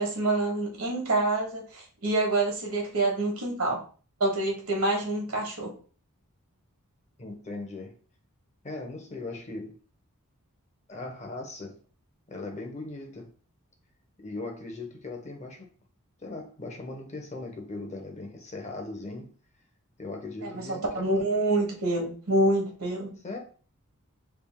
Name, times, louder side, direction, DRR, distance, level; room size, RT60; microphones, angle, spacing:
voice 1, 0.0-3.8 4.2-5.7 20.4-23.1, right 2 dB, 70° right, 1.3 m, -27 dB
voice 2, 7.2-8.0 8.6-9.8 10.9-11.8 12.3-13.3 14.2-15.7 16.2-19.3 20.0-21.2 23.2-23.4, left 2 dB, 30° left, 0.7 m, -39 dB
3.3 x 2.4 x 3.5 m
head